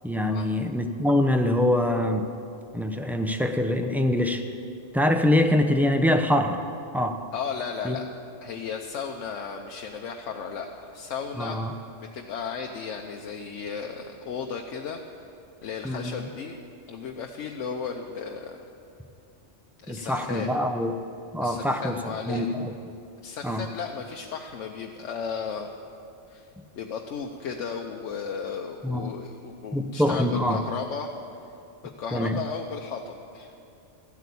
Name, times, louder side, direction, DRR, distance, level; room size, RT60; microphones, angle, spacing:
voice 1, 0.0-2.3 2.7-4.4 4.9-6.6 6.9-7.2 7.8-8.0 11.4-11.7 15.8-16.3 19.9-20.9 21.3-22.0 22.3-22.7 23.4-23.6 28.8-29.1 29.7-30.6 32.1-32.4, left 1 dB, 5° right, 5 dB, 0.4 m, -24 dB
voice 2, 7.3-8.0 8.4-11.6 12.0-15.0 15.6-16.6 16.9-18.6 19.8-20.5 21.4-22.5 23.2-25.7 26.3-26.5 26.8-31.1 32.0-33.5, left 6 dB, 90° left, 2 dB, 1.1 m, -35 dB
14.0 x 8.3 x 8.4 m, 2.6 s
omnidirectional pair, 1.2 m